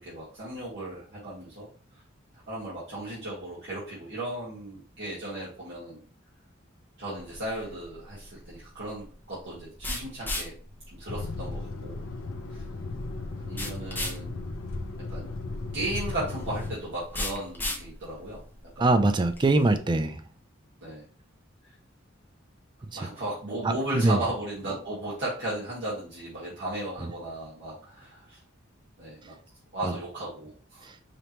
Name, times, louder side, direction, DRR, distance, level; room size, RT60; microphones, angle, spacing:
voice 1, 0.0-1.7 2.5-6.0 7.0-10.5 10.9-12.0 12.5-12.6 13.4-14.4 15.1-15.3 15.7-18.4 18.7-18.9 20.8-21.0 22.9-28.4 29.0-29.3 29.7-30.9, right 1 dB, 60° right, 1.4 m, -35 dB
sound 1, 7.2-19.8, left 1 dB, 10° left, 0.9 m, -39 dB
sound 2, 11.1-16.8, left 2 dB, 80° left, 0.6 m, -36 dB
voice 2, 18.8-20.2 23.6-24.2 29.8-29.9, right 2 dB, 25° right, 0.4 m, -23 dB
5.1 x 2.9 x 2.9 m
head